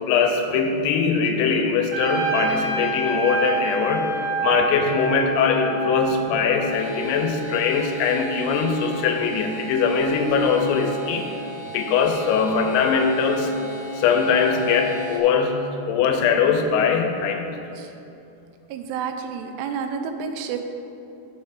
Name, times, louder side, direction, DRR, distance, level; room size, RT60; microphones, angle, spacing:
voice 1, 0.1-4.1 4.4-11.3 11.7-13.5 14.0-17.6, left 5 dB, 90° left, 4 dB, 2.7 m, -21 dB
Trumpet, 1.9-6.6, right 3 dB, 60° right, 3.5 m, -27 dB
sound 1, 6.7-15.2, right 3 dB, 60° left, 1.6 m, -37 dB
voice 2, 18.7-20.6, right 6 dB, 85° right, 6 dB, 2.7 m, -30 dB
11.0 x 4.9 x 4.7 m, 2.8 s
omnidirectional pair, 4.7 m